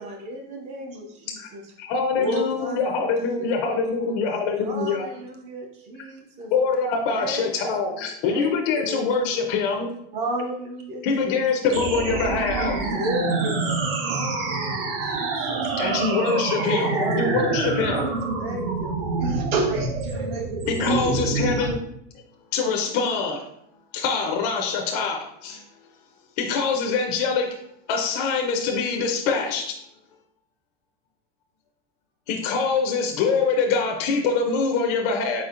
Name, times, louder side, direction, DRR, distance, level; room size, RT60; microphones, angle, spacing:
voice 1, 0.0-1.6 2.2-6.5 7.1-9.4 10.1-11.8 12.8-15.7 16.5-19.2, equal, 25° right, 2 dB, 0.5 m, -34 dB
voice 2, 1.8-5.1 6.5-9.9 11.0-12.8 15.8-18.0 20.7-21.8 22.5-23.5 23.9-25.6 26.4-27.6 27.9-29.8 32.3-35.4, left 5 dB, 40° left, 1 dB, 0.5 m, -24 dB
sound 1, 11.7-21.7, right 4 dB, 70° right, 0.8 m, -27 dB
voice 3, 19.2-20.5 20.8-21.7, right 2 dB, 85° right, 1 dB, 1.1 m, -27 dB
4.3 x 4.2 x 2.4 m, 0.73 s
supercardioid pair, 175°, 30 cm